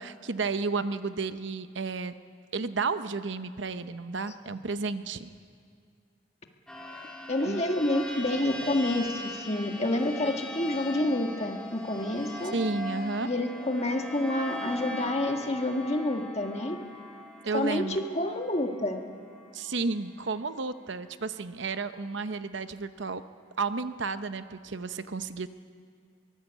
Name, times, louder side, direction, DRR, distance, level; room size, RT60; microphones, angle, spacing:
voice 1, 0.0-2.1 2.5-5.3 7.4-7.6 12.5-13.3 17.4-18.0 19.5-23.2 23.6-25.5, right 4 dB, 60° right, 11 dB, 0.8 m, -32 dB
sound 1, 6.7-19.9, left 1 dB, 5° left, 2.6 m, -40 dB
voice 2, 7.3-12.5 13.2-16.8 17.5-19.0, left 1 dB, 30° left, 4 dB, 1.7 m, -28 dB
23.0 x 19.5 x 8.3 m, 2.1 s
head